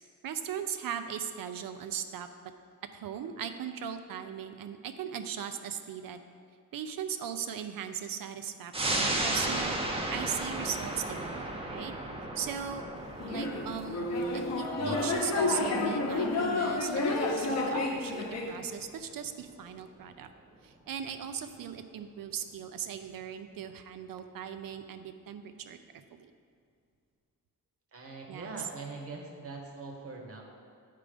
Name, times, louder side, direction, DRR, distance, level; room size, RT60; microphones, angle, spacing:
voice 1, 0.2-2.5 2.9-6.2 6.7-11.9 12.4-12.8 13.3-14.1 14.3-20.3 20.6-26.3 28.3-28.5, right 8 dB, 75° right, 8 dB, 0.5 m, -38 dB
sound 1, 8.7-19.7 20.1-20.2, right 1 dB, 15° right, 0.5 m, -36 dB
sound 2, 13.2-18.5, left 2 dB, 50° left, 0.8 m, -30 dB
voice 2, 27.9-30.4, right 3 dB, 40° right, 1 dB, 1.0 m, -42 dB
9.4 x 3.8 x 5.0 m, 2.2 s
wide cardioid pair, 175°, 34 cm